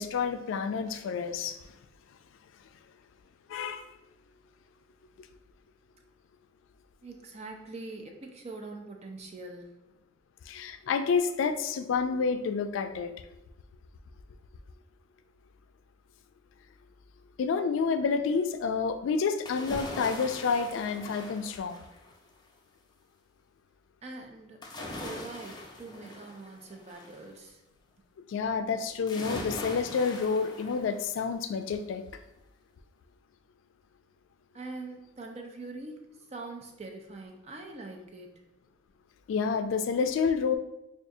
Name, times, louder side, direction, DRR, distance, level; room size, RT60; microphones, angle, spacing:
voice 1, 0.0-1.6 3.5-3.9 10.5-13.1 17.4-21.8 28.3-32.1 39.3-40.6, left 5 dB, 90° left, 9 dB, 0.3 m, -29 dB
voice 2, 7.0-9.7 24.0-24.6 24.9-27.6 34.5-38.3, right 2 dB, 35° right, 2 dB, 0.5 m, -43 dB
sound 1, 19.5-22.3 24.6-27.2 29.1-31.4 31.8-31.9, left 1 dB, 20° left, 0.5 m, -41 dB
4.7 x 2.4 x 2.6 m, 0.89 s
head